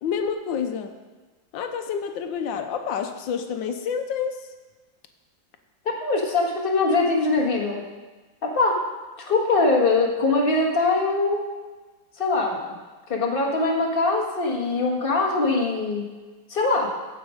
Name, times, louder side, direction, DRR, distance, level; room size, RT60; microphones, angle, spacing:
voice 1, 0.0-1.0 1.5-4.4, left 7 dB, 90° left, 7 dB, 1.4 m, -28 dB
voice 2, 6.0-7.8 8.4-8.8 9.2-11.4 12.2-12.6 13.1-16.0 16.5-16.9, left 3 dB, 30° left, -1 dB, 1.6 m, -22 dB
15.0 x 5.3 x 5.0 m, 1.2 s
omnidirectional pair, 2.0 m